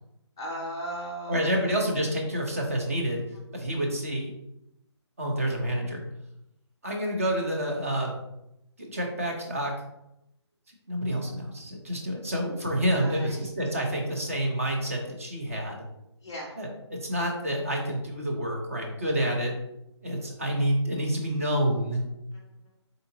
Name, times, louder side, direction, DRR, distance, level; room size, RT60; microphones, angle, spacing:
voice 1, 0.4-2.0 12.9-13.5 16.2-16.5 22.3-22.4, right 1 dB, 10° left, -8 dB, 0.4 m, -37 dB
voice 2, 1.3-3.2 3.5-4.3 5.2-6.0 6.8-8.2 8.9-9.7 10.9-15.8 16.6-19.6 20.0-22.0, equal, 30° right, 1 dB, 0.8 m, -28 dB
4.7 x 3.9 x 2.7 m, 0.84 s
hypercardioid pair, 180°, 15 cm